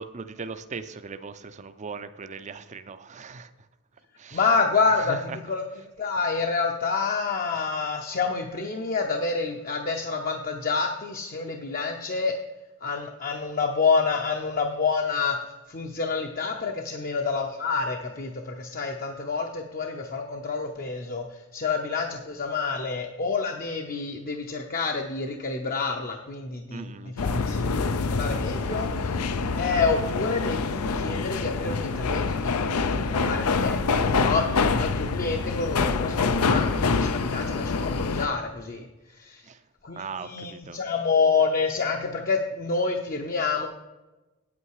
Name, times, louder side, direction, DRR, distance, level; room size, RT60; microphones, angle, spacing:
voice 1, 0.0-3.5 4.2-4.6 4.9-5.4 7.6-7.7 26.7-27.2 28.7-28.9 39.4-39.6 39.9-40.8, right 4 dB, 35° right, 11 dB, 0.5 m, -39 dB
voice 2, 4.3-5.6 6.0-12.4 12.8-15.4 15.7-27.6 27.9-39.4 39.8-43.7, left 4 dB, 40° left, 3 dB, 0.7 m, -28 dB
sound 1, 27.2-38.3, left 4 dB, 85° left, 0.6 m, -26 dB
8.8 x 8.6 x 4.7 m, 1.1 s
head